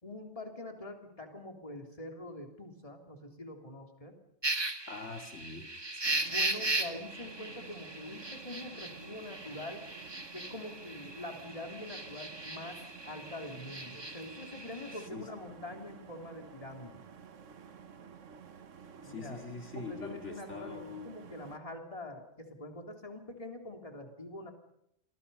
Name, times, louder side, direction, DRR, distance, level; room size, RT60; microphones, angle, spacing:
voice 1, 0.0-4.2 6.3-9.8 10.3-12.8 13.1-17.0 19.0-19.4 19.7-24.5, left 2 dB, 30° left, 3 dB, 3.3 m, -44 dB
sound 1, 4.4-15.1, right 2 dB, 20° right, 1.5 m, -38 dB
voice 2, 4.9-5.7 15.1-15.3 19.0-21.1, left 4 dB, 75° left, 3 dB, 2.8 m, -43 dB
sound 2, 6.0-21.6, right 6 dB, 85° right, 1.5 m, -52 dB
29.5 x 23.5 x 5.6 m, 0.74 s
omnidirectional pair, 1.2 m